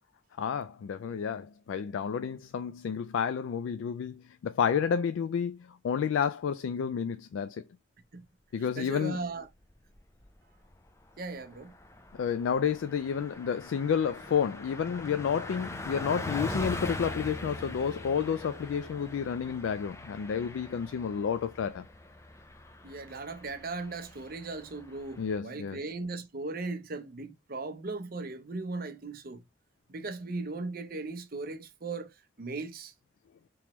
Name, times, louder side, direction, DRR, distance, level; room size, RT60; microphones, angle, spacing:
voice 1, 0.4-5.6 5.8-7.6 8.5-9.2 12.2-21.8 25.2-25.8, left 7 dB, 85° left, 0.3 m, -30 dB
voice 2, 8.8-9.5 11.2-11.7 22.8-29.4 29.9-32.1 32.4-32.9, right 3 dB, 50° right, 0.7 m, -38 dB
Car passing by, 9.7-10.3 10.7-10.8 11.1-25.4, left 2 dB, 15° left, 0.5 m, -42 dB
3.5 x 3.0 x 2.9 m
head